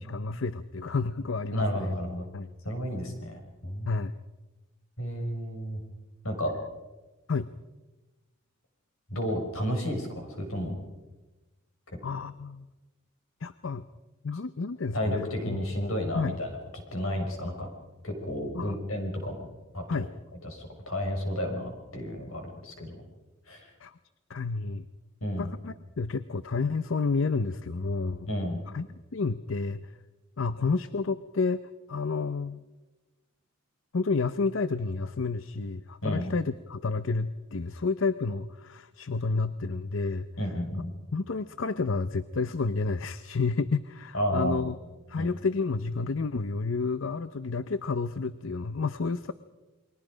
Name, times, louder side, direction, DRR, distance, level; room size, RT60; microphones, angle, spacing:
voice 1, 0.0-1.9 2.3-2.5 3.9-4.2 7.3-7.5 12.0-12.7 13.4-13.8 14.2-15.6 16.1-16.4 18.5-18.8 19.9-20.1 23.8-23.9 24.3-24.8 25.4-28.3 28.7-28.9 29.1-29.9 30.4-31.6 31.9-32.6 33.9-40.3 41.1-44.8 45.1-49.3, left 4 dB, 65° left, 14 dB, 0.6 m, -30 dB
voice 2, 1.5-2.3 2.6-3.9 5.0-5.8 6.2-6.5 9.1-10.8 14.9-16.6 16.9-17.7 18.0-19.4 19.7-20.1 20.4-23.0 23.5-23.7 25.2-25.5 28.3-28.6 36.0-36.3 40.4-40.9 44.1-44.7 45.2-45.3, equal, 85° left, 3 dB, 5.6 m, -32 dB
29.0 x 22.5 x 5.1 m, 1.1 s
head